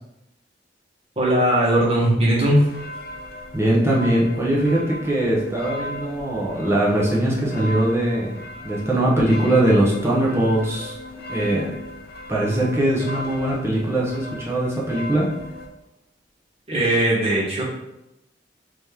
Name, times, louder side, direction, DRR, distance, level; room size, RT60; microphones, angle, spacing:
voice 1, 1.1-2.6 16.7-17.6, right 1 dB, 35° right, -6 dB, 1.5 m, -19 dB
sound 1, 2.4-15.7, left 1 dB, 55° left, 0.6 m, -37 dB
voice 2, 3.5-8.4 8.6-11.0 11.3-11.7 12.3-15.3, right 1 dB, 15° right, -5 dB, 1.0 m, -21 dB
4.1 x 3.0 x 3.5 m, 0.87 s
head